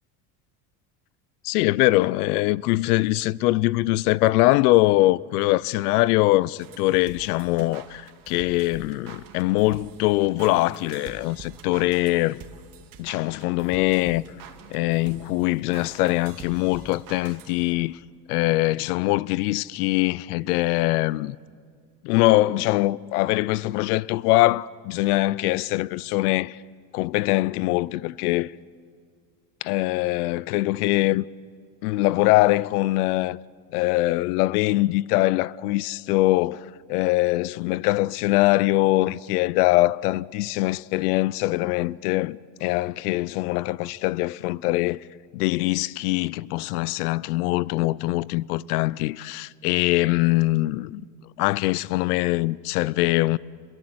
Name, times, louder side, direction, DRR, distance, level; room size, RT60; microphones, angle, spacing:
voice 1, 1.4-12.4 13.0-14.2 14.7-18.0 18.3-21.4 22.0-26.6 26.9-28.5 29.6-31.3 31.8-33.4 33.7-45.0 45.3-51.0 51.4-53.4, left 19 dB, 85° left, 0.7 m, -22 dB
sound 1, 6.6-17.9, right 7 dB, 50° right, 2.3 m, -46 dB
27.5 x 22.0 x 7.9 m
supercardioid pair, 95°, 44 cm